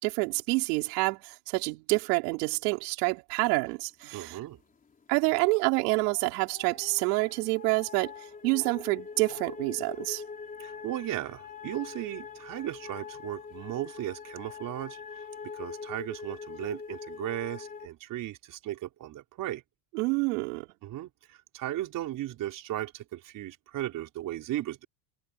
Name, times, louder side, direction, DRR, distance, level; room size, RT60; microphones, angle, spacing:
voice 1, 0.0-4.4 5.1-8.1 8.4-10.2 19.9-20.7, right 27 dB, 75° right, 4.6 m, -27 dB
voice 2, 4.1-4.6 10.6-15.0 15.5-19.6 20.8-24.8, right 14 dB, 40° right, 4.7 m, -36 dB
sound 1, 5.3-17.9, left 5 dB, 15° left, 3.8 m, -43 dB
supercardioid pair, 140°, 47 cm